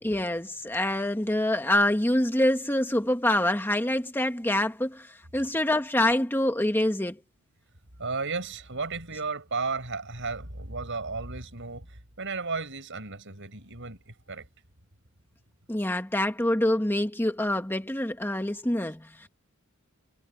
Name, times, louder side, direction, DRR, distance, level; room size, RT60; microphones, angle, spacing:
voice 1, 0.0-7.2 15.7-19.3, left 1 dB, 10° left, 1.6 m, -26 dB
voice 2, 8.0-14.5, right 4 dB, 60° right, 7.5 m, -34 dB
head